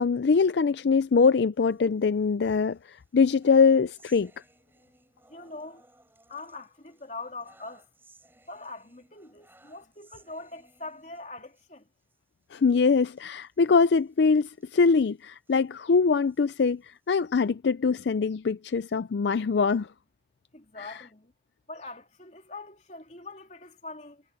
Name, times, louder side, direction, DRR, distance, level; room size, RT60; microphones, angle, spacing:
voice 1, 0.0-4.3 12.5-19.9 20.8-21.0, left 5 dB, 70° left, 0.4 m, -23 dB
sound 1, 1.5-2.5 2.9-11.7 12.0-12.2 12.4-12.6 13.1-15.6 16.1-17.5, right 2 dB, 10° right, 7.5 m, -61 dB
voice 2, 5.3-5.8 6.3-7.8 8.5-11.9 20.5-21.3 21.7-24.2, left 3 dB, 40° left, 3.2 m, -42 dB
head